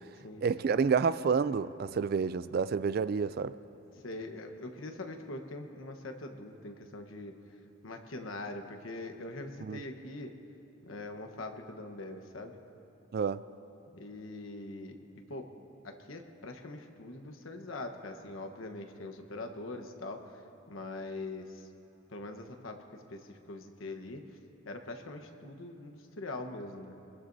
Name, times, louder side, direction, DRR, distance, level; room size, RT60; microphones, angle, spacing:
voice 1, 0.4-3.5 9.7-9.8 13.1-13.4, right 5 dB, 50° right, 0.3 m, -29 dB
voice 2, 4.0-7.3 7.8-10.3 10.8-12.5 13.9-15.5 15.8-20.4 20.7-21.7 22.1-24.2 24.7-26.9, left 2 dB, 80° left, 1.2 m, -43 dB
24.0 x 21.0 x 2.7 m
head